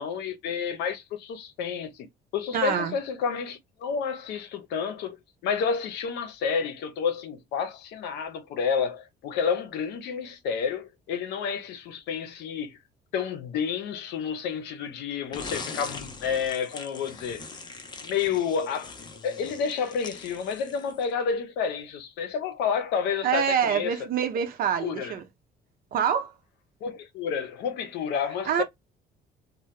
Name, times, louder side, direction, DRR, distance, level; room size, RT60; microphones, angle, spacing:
voice 1, 0.0-2.1 2.3-5.2 5.4-12.8 13.1-17.5 18.0-19.0 19.2-23.9 24.8-25.1 26.8-28.6, left 6 dB, 85° left, 0.8 m, -30 dB
voice 2, 2.5-3.0 23.2-25.2 25.9-26.3 28.5-28.6, right 8 dB, 60° right, 0.8 m, -26 dB
sound 1, 15.3-21.2, left 4 dB, 25° left, 0.7 m, -41 dB
2.8 x 2.2 x 3.2 m
cardioid pair, 110°, 17 cm